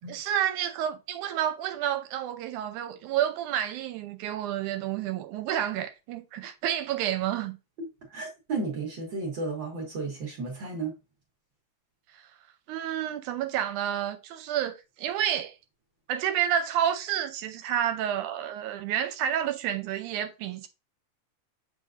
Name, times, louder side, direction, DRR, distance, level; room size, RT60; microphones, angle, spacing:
voice 1, 0.1-7.6 12.7-15.5 16.1-20.7, right 10 dB, 90° right, 2.1 m, -29 dB
voice 2, 7.8-11.0, right 3 dB, 50° right, 1.7 m, -33 dB
7.3 x 5.2 x 2.5 m
omnidirectional pair, 3.5 m